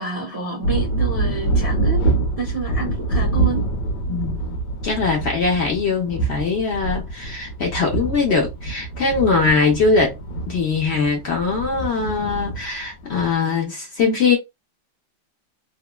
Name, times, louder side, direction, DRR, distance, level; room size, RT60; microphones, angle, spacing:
voice 1, 0.0-2.1 2.4-3.7, right 4 dB, 40° right, 0.5 m, -28 dB
sound 1, 0.6-13.4, right 2 dB, 75° left, 1.4 m, -25 dB
voice 2, 4.1-4.4 4.8-10.2 10.5-14.4, left 4 dB, 60° left, 0.7 m, -21 dB
3.3 x 2.0 x 2.2 m
omnidirectional pair, 2.1 m